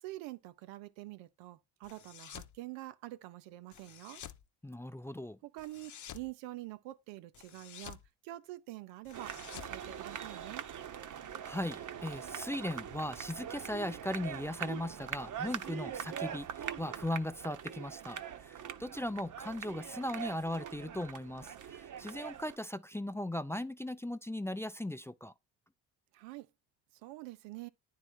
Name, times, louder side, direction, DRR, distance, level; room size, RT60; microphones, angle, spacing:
voice 1, 0.0-4.2 5.4-8.0 8.2-10.6 26.1-26.5 27.0-27.7, right 17 dB, 85° right, 0.8 m, -46 dB
sound 1, 1.8-2.6 3.7-4.4 5.6-6.3 7.3-8.1 9.0-10.6, left 10 dB, 45° left, 0.8 m, -50 dB
voice 2, 4.6-5.4 11.4-25.3, left 1 dB, 5° left, 0.5 m, -38 dB
sound 2, 9.1-22.6, right 9 dB, 45° right, 0.9 m, -43 dB
9.6 x 3.8 x 4.5 m
supercardioid pair, 70°, 42 cm